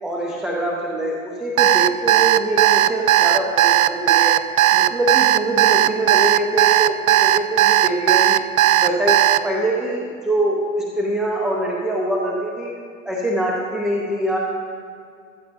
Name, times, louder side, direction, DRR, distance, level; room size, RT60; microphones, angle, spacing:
voice 1, 0.0-4.3 4.7-8.4 8.8-12.7 13.0-14.4, right 1 dB, ahead, -3 dB, 0.4 m, -24 dB
Alarm, 1.6-9.4, right 14 dB, 75° right, 0.6 m, -15 dB
14.5 x 12.5 x 2.5 m, 2.3 s
hypercardioid pair, 135°, 41 cm